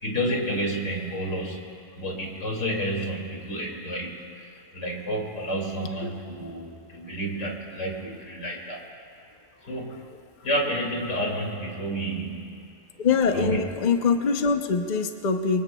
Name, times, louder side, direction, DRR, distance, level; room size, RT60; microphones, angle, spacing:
voice 1, 0.0-1.6 2.0-4.3 4.7-8.9 9.6-10.0 10.4-12.5 13.3-13.6, equal, 85° left, -1 dB, 2.8 m, -30 dB
voice 2, 13.0-15.6, left 5 dB, 40° left, 6 dB, 0.8 m, -23 dB
25.5 x 23.5 x 2.3 m, 2.3 s
omnidirectional pair, 1.3 m